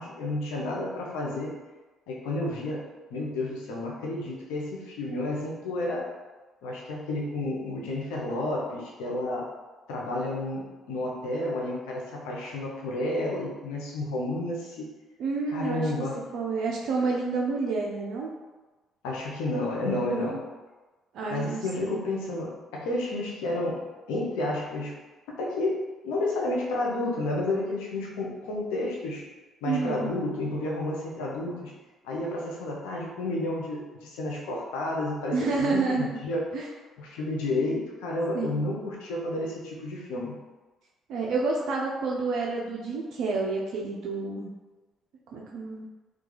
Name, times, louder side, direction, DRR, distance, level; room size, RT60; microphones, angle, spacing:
voice 1, 0.0-1.5 2.1-2.8 3.1-6.1 6.6-9.4 9.9-14.9 15.5-16.2 19.0-20.4 21.3-23.8 24.1-24.9 25.4-29.2 29.6-31.7 32.0-36.5 37.0-40.4, left 2 dB, 85° left, -3 dB, 0.6 m, -31 dB
voice 2, 15.2-15.9 16.3-18.3 20.1-20.4 21.1-22.0 29.6-30.1 35.3-36.2 36.5-36.7 38.3-38.6 41.1-44.5 45.3-45.9, right 4 dB, 70° right, -2 dB, 0.3 m, -29 dB
2.3 x 2.2 x 3.1 m, 1.2 s
supercardioid pair, 65°, 0 cm